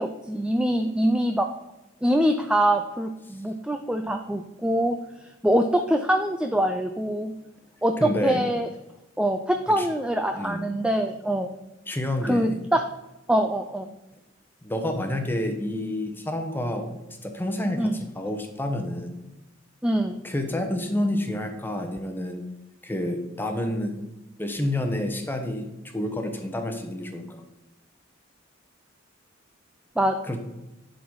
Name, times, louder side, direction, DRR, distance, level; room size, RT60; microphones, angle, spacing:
voice 1, 0.0-1.5 2.0-5.0 5.4-7.3 7.8-8.7 9.2-11.5 12.2-12.8 13.3-13.9 17.8-18.0 19.8-20.2 30.0-30.2, right 1 dB, 5° right, 6 dB, 0.3 m, -24 dB
voice 2, 8.0-8.4 9.8-9.9 10.3-10.7 11.9-12.6 14.6-16.9 17.2-19.1 20.2-22.4 22.8-24.0 24.4-27.4 30.2-30.4, left 1 dB, 10° left, 5 dB, 0.9 m, -29 dB
11.0 x 4.0 x 4.7 m, 0.98 s
head